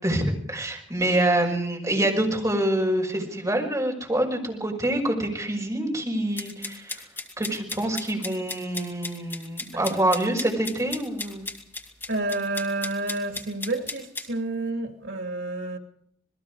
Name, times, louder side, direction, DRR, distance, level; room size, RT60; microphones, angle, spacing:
voice 1, 0.0-7.0 7.4-11.5, right 1 dB, 20° right, 5.7 m, -26 dB
sound 1, 6.4-14.3, left 3 dB, 10° left, 2.6 m, -36 dB
voice 2, 12.1-15.8, right 2 dB, 80° right, 2.8 m, -29 dB
27.5 x 21.0 x 4.9 m
head